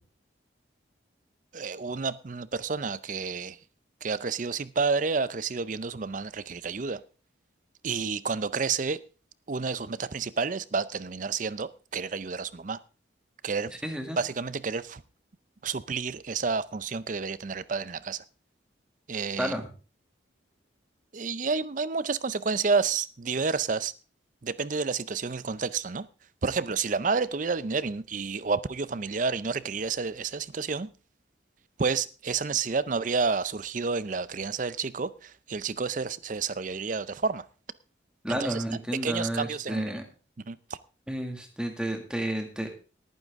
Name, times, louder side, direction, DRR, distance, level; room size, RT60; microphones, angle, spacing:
voice 1, 1.5-3.6 4.0-7.0 7.8-9.0 9.5-12.8 13.4-13.7 14.2-15.0 15.6-18.2 19.1-19.5 21.1-23.9 24.4-26.1 26.4-30.9 31.8-37.5 38.3-38.6 39.0-40.0 40.4-40.6, right 4 dB, 45° right, 0.5 m, -30 dB
voice 2, 13.8-14.2 19.4-19.7 38.2-40.0 41.1-42.7, right 1 dB, 5° right, 1.9 m, -31 dB
18.5 x 9.3 x 3.6 m
head